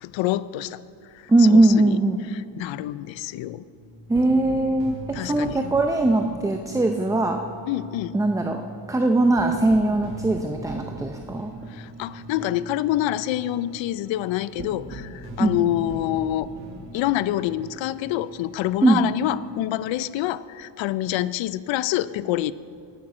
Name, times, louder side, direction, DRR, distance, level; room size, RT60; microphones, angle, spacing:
voice 1, 0.0-0.8 1.4-2.0 2.3-3.6 5.1-5.6 7.7-8.2 11.7-16.5 16.9-22.5, left 14 dB, 75° left, 16 dB, 0.5 m, -26 dB
voice 2, 1.3-2.2 4.1-7.4 8.1-8.6 8.9-11.5 15.4-15.6 18.8-19.0, right 2 dB, 10° right, 4 dB, 0.5 m, -20 dB
freaky news, 3.8-19.5, right 1 dB, 70° right, 2.1 m, -40 dB
9.9 x 9.1 x 6.1 m, 2.5 s
cardioid pair, 105°, 46 cm